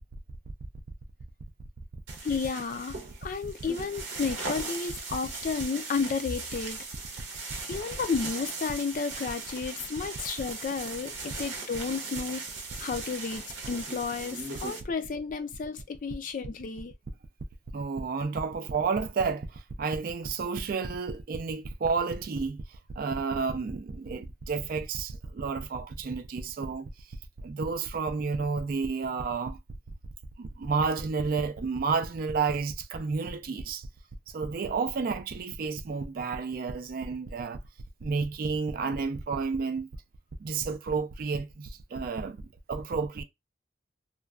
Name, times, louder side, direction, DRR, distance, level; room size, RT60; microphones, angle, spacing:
sound 1, 2.1-14.8, right 3 dB, 90° right, 0.8 m, -39 dB
voice 1, 2.2-6.8 7.7-12.5 12.8-16.9, left 5 dB, 45° left, 0.3 m, -32 dB
voice 2, 17.7-22.6 23.0-26.9 27.4-29.6 30.4-33.9 34.3-37.6 38.0-39.9 40.4-43.2, right 4 dB, 50° right, 0.3 m, -31 dB
2.5 x 2.2 x 2.3 m
head